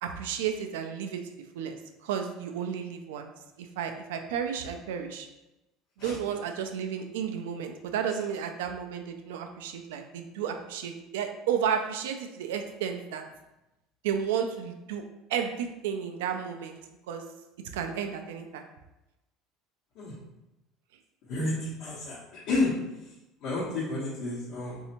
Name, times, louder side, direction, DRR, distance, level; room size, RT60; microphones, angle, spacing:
voice 1, 0.0-3.3 3.6-5.3 6.0-13.2 14.0-15.0 15.3-16.8 17.1-17.2 17.7-18.7, right 8 dB, 85° right, 6 dB, 0.3 m, -32 dB
voice 2, 21.3-22.2 22.5-22.7 23.4-24.8, left 2 dB, 70° left, -9 dB, 1.0 m, -30 dB
3.2 x 2.7 x 2.9 m, 0.97 s
supercardioid pair, 95°, 0 cm